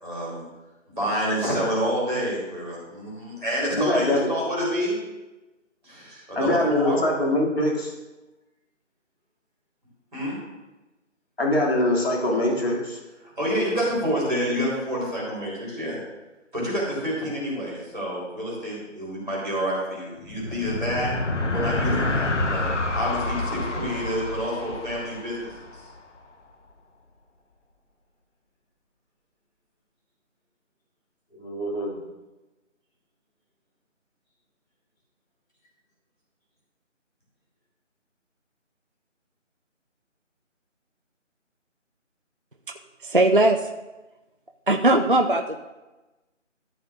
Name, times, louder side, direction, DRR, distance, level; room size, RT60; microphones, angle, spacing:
voice 1, 0.0-0.4 0.9-4.9 5.8-7.0 10.1-10.3 13.2-16.0 16.5-21.1 21.5-22.6 22.9-25.8, equal, ahead, -23 dB, 1.4 m, -28 dB
voice 2, 3.8-4.3 6.3-7.9 11.4-13.0 31.3-32.0, left 1 dB, 50° left, -2 dB, 2.6 m, -23 dB
sound 1, 20.2-25.9, left 2 dB, 70° left, 1.2 m, -28 dB
voice 3, 43.0-43.7 44.7-45.6, right 2 dB, 45° right, 4 dB, 0.4 m, -19 dB
14.0 x 8.0 x 2.5 m, 1.1 s
figure-of-eight pair, 170°, 38 cm